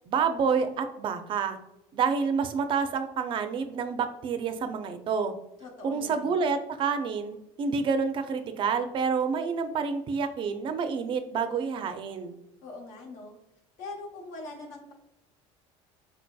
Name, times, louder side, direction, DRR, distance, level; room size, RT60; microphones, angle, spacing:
voice 1, 0.1-1.6 1.9-5.3 5.8-12.4, right 5 dB, 40° right, 9 dB, 0.4 m, -28 dB
voice 2, 5.6-6.4 12.6-13.4 13.8-14.9, left 2 dB, 70° left, 2 dB, 0.9 m, -42 dB
3.9 x 2.6 x 2.2 m, 0.91 s
cardioid pair, 120°, 13 cm